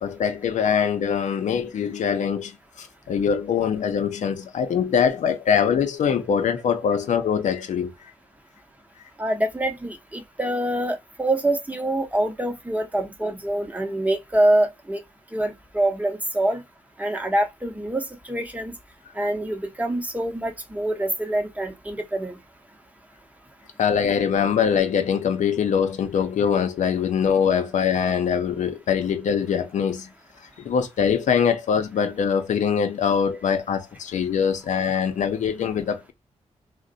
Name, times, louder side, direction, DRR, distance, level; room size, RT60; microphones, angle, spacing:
voice 1, 0.0-2.5 2.8-8.1 23.8-30.1 30.6-36.1, left 7 dB, 75° left, 0.6 m, -23 dB
voice 2, 9.2-15.0 15.3-16.6 17.0-18.7 19.2-22.4, right 1 dB, 10° right, 0.8 m, -25 dB
2.5 x 2.1 x 3.8 m
cardioid pair, 95°, 12 cm